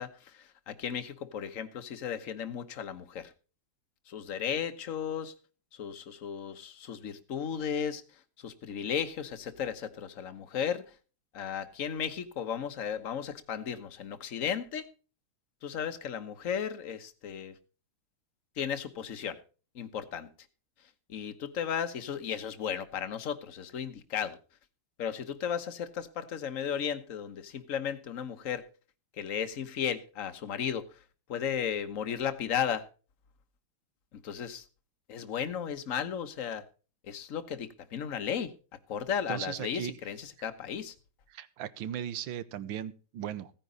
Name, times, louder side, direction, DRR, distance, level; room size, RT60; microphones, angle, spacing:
voice 1, 0.0-3.3 4.1-5.3 5.7-11.0 11.3-14.9 15.6-17.6 18.6-19.4 19.7-20.3 21.1-24.4 25.0-28.7 29.1-31.0 31.3-32.9 34.2-34.6 35.1-36.7 37.0-38.5 38.9-40.9, left 8 dB, 45° left, 1.2 m, -35 dB
voice 2, 39.3-40.0 41.3-43.5, right 10 dB, 70° right, 1.6 m, -37 dB
16.5 x 9.9 x 4.0 m
omnidirectional pair, 2.4 m